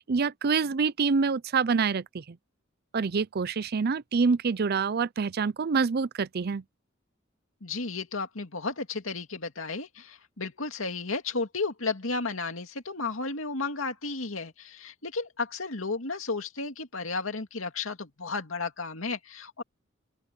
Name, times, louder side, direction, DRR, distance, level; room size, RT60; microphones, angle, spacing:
voice 1, 0.0-2.4 2.9-6.6, right 5 dB, 50° right, 0.5 m, -26 dB
voice 2, 7.6-19.6, left 3 dB, 85° left, 2.4 m, -33 dB
open air
head